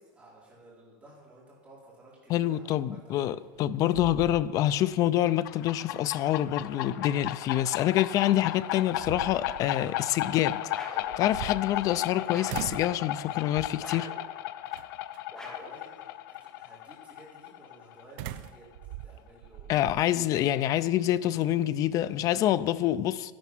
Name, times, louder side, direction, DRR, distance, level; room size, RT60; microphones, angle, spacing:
voice 1, 0.0-3.1 15.3-19.8, right 1 dB, 10° right, 4.1 m, -54 dB
voice 2, 2.3-10.6 10.9-14.1 19.7-23.3, left 13 dB, 30° left, 0.4 m, -26 dB
sound 1, 3.3-3.6 3.9-4.9 5.3-5.4 8.1-8.2 8.8-9.7 11.0-12.1 12.5-13.0 13.5-13.9 14.7-15.2 18.2-20.0, right 12 dB, 55° right, 0.5 m, -41 dB
sound 2, 5.3-18.6, left 13 dB, 85° left, 0.6 m, -35 dB
sound 3, 10.7-11.2 12.3-12.7 13.8-14.3 15.3-15.8, left 1 dB, 5° left, 1.5 m, -43 dB
12.0 x 11.5 x 6.1 m
cardioid pair, 175°, 11 cm